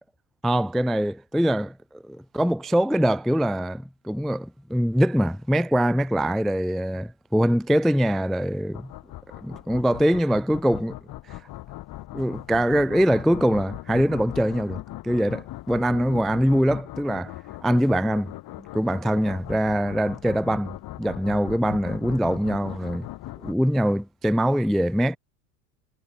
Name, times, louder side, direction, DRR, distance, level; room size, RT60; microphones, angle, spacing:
voice 1, 0.4-8.9 9.4-11.0 12.1-17.3 17.6-18.3 18.7-23.1 23.4-25.2, equal, ahead, 0.3 m, -23 dB
sound 1, 8.7-23.5, left 16 dB, 45° left, 3.0 m, -39 dB
supercardioid pair, 120°, 48 cm